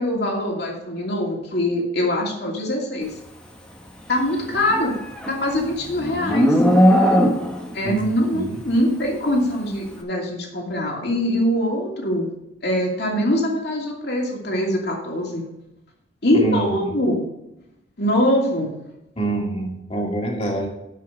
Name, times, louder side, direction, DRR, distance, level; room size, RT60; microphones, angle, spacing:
voice 1, 0.0-3.1 4.1-4.9 5.3-6.6 7.7-12.3 12.6-15.4 16.2-17.2 18.0-18.7, left 1 dB, 55° left, -1 dB, 2.5 m, -23 dB
Livestock farm animals working animals, 4.5-7.7, equal, 5° left, 1.2 m, -18 dB
voice 2, 16.3-16.9 19.2-20.7, right 2 dB, 30° left, 0 dB, 2.2 m, -26 dB
11.5 x 5.6 x 5.2 m, 0.87 s
head